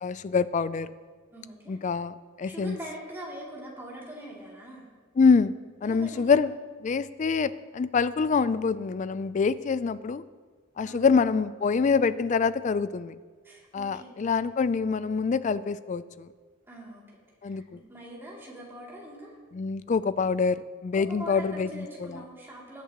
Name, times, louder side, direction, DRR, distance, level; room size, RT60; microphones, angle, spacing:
voice 1, 0.0-0.9 1.7-2.8 5.2-5.5 5.8-6.5 6.8-10.2 10.8-13.1 13.7-16.3 17.4-17.8 19.5-22.2, left 5 dB, 40° left, 16 dB, 0.3 m, -25 dB
voice 2, 1.3-1.8 2.4-4.9 5.8-6.5 10.8-11.1 13.4-14.4 16.6-19.3 21.0-22.8, equal, 10° right, -5 dB, 2.7 m, -43 dB
20.5 x 8.3 x 3.0 m, 1.5 s
head